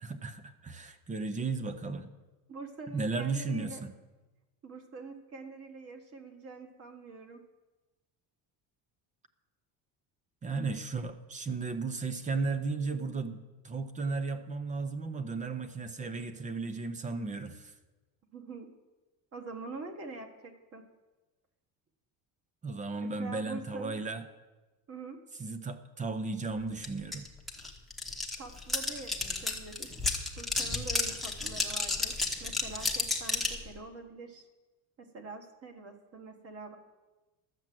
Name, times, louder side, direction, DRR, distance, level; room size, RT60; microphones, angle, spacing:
voice 1, 0.0-2.1 2.9-3.9 10.4-17.7 22.6-24.2 25.4-27.3, right 3 dB, 20° right, 11 dB, 0.6 m, -35 dB
voice 2, 2.5-3.8 4.6-7.4 18.3-18.7 19.3-20.8 23.0-24.0 24.9-25.2 28.4-29.9 30.4-34.5 35.0-36.8, right 3 dB, 35° right, 6 dB, 1.4 m, -45 dB
sound 1, 26.8-26.9 27.1-33.6, left 3 dB, ahead, 1.0 m, -32 dB
12.0 x 7.3 x 7.6 m, 1.2 s
cardioid pair, 165°, 42 cm